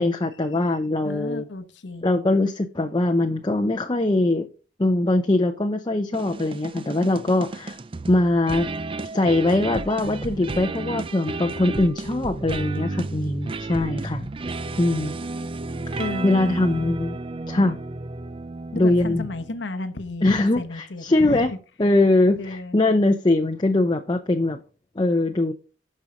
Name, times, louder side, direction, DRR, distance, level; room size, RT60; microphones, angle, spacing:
voice 1, 0.0-1.4 2.0-4.5 4.8-7.8 8.1-8.7 9.1-14.3 14.8-15.1 15.9-17.2 17.5-17.8 18.7-19.3 20.2-21.5 21.8-24.6 25.0-25.5, left 2 dB, 25° left, 0.7 m, -22 dB
voice 2, 1.0-2.1 16.0-16.6 18.7-21.5 22.4-22.8, left 2 dB, 85° left, 1.1 m, -32 dB
sound 1, 6.1-19.6, right 2 dB, 30° right, 0.5 m, -32 dB
12.0 x 5.6 x 5.0 m
head